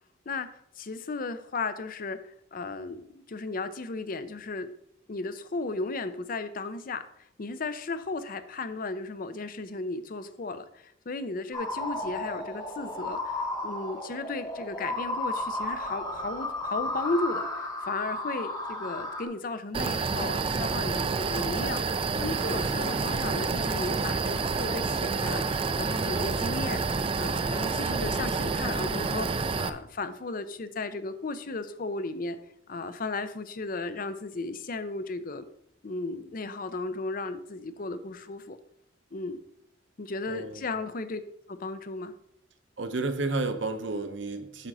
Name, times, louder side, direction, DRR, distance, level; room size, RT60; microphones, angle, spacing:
voice 1, 0.8-2.2 2.5-4.7 5.1-21.8 22.2-26.8 27.2-32.4 32.7-35.5 35.8-38.6 39.1-39.4 40.0-41.2 41.5-42.1, left 3 dB, 45° left, 12 dB, 0.5 m, -35 dB
sound 1, 11.5-19.2, left 2 dB, 20° left, 1.2 m, -33 dB
sound 2, 19.7-29.7, right 4 dB, 30° right, 0.4 m, -28 dB
Wind instrument woodwind instrument, 22.2-27.0, right 1 dB, 85° right, 2.0 m, -53 dB
voice 2, 40.3-40.6 42.8-44.7, right 3 dB, 65° right, 8 dB, 0.8 m, -31 dB
8.7 x 3.8 x 6.1 m, 0.75 s
head